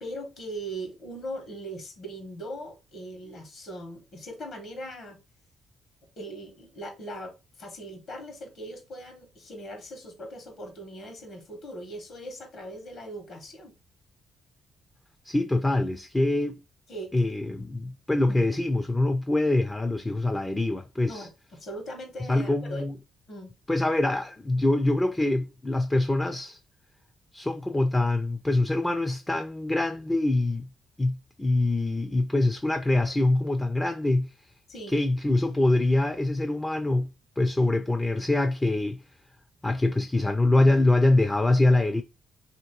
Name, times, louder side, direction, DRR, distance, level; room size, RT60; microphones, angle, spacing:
voice 1, 0.0-5.2 6.2-13.7 16.9-17.1 18.3-18.4 21.1-22.8 23.3-23.5 34.7-35.0, right 1 dB, 60° left, 1.3 m, -40 dB
voice 2, 15.2-16.6 17.1-21.3 22.3-23.0 23.7-26.6 27.3-30.7 31.0-34.3 34.9-39.0 39.6-42.0, left 2 dB, 15° left, 0.4 m, -24 dB
2.9 x 2.8 x 4.4 m
cardioid pair, 90°, 0 cm